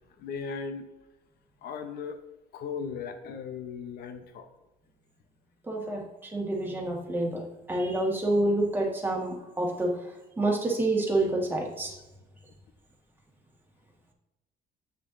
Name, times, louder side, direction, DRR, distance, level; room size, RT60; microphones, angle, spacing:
voice 1, 0.2-0.9 1.6-2.2 2.5-4.5, left 6 dB, 70° left, 7 dB, 0.9 m, -37 dB
voice 2, 5.7-7.4 7.7-10.0 10.4-11.9, right 2 dB, 10° right, -1 dB, 1.6 m, -28 dB
7.5 x 6.7 x 2.6 m, 1.0 s
cardioid pair, 110°, 17 cm